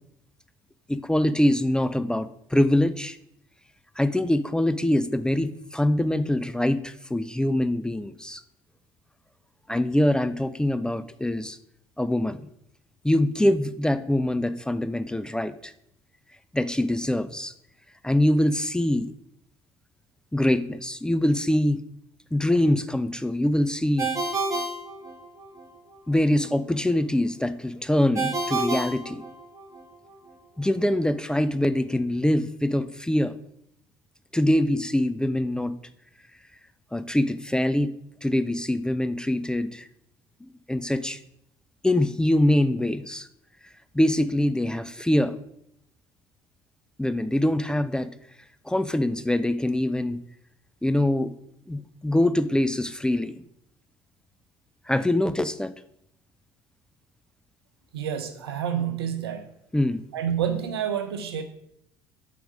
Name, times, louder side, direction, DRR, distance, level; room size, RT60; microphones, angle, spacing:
voice 1, 0.9-3.2 4.0-8.4 9.7-11.6 12.0-12.4 13.0-15.7 16.5-17.5 18.0-19.1 20.3-21.8 22.3-24.1 26.1-29.2 30.6-33.4 34.3-35.8 36.9-37.9 38.2-39.9 40.4-41.2 41.8-43.3 43.9-45.4 47.0-48.1 48.7-50.2 50.8-51.3 51.7-53.4 54.9-55.7 59.7-60.1, left 1 dB, 5° left, 13 dB, 0.4 m, -24 dB
Ringtone, 24.0-25.7 28.2-29.8, right 3 dB, 25° right, 1.6 m, -29 dB
voice 2, 57.9-59.5 60.1-61.4, right 8 dB, 85° right, 9 dB, 0.6 m, -28 dB
5.0 x 4.5 x 5.3 m, 0.75 s
hypercardioid pair, 60°, 13 cm